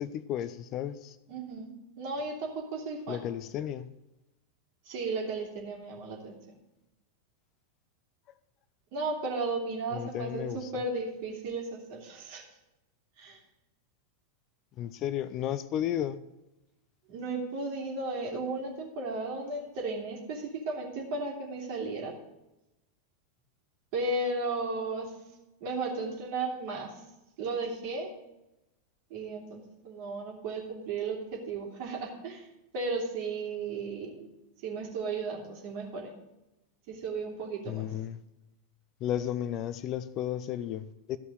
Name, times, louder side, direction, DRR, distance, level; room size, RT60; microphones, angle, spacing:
voice 1, 0.0-1.2 3.1-3.9 9.9-10.7 14.8-16.2 37.7-38.2 39.0-41.2, left 11 dB, 35° left, 0.5 m, -33 dB
voice 2, 1.3-1.7 2.0-3.2 4.8-6.4 8.9-12.4 13.2-13.4 17.1-22.2 23.9-25.1 25.6-26.9 27.4-28.1 29.1-32.4 32.7-34.3 34.6-36.1 36.9-37.9, right 3 dB, 45° right, 2.9 m, -34 dB
13.5 x 5.4 x 7.8 m
figure-of-eight pair, 90°, 0 cm